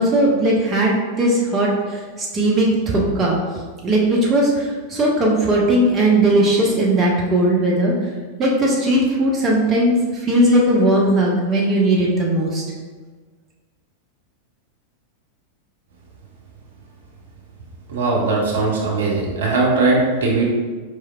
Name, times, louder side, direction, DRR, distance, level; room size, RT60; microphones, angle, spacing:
voice 1, 0.0-3.4 3.8-7.9 8.4-12.6, right 1 dB, 25° right, -4 dB, 0.7 m, -18 dB
voice 2, 17.9-20.5, right 3 dB, 60° right, -3 dB, 0.8 m, -19 dB
4.6 x 3.2 x 2.3 m, 1.4 s
figure-of-eight pair, 90°, 0 cm